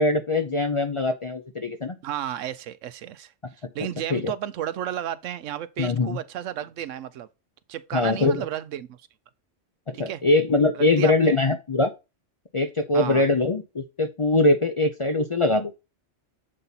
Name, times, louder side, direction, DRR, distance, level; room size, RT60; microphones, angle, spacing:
voice 1, 0.0-2.0 4.1-4.3 5.8-6.2 7.9-8.4 9.9-11.9 12.5-15.7, left 2 dB, 40° left, 0.4 m, -22 dB
voice 2, 2.0-3.3 3.7-7.3 7.7-9.0 9.9-10.2 10.7-11.3 12.9-13.2, right 11 dB, 85° right, 1.0 m, -32 dB
7.6 x 4.1 x 3.9 m
omnidirectional pair, 1.2 m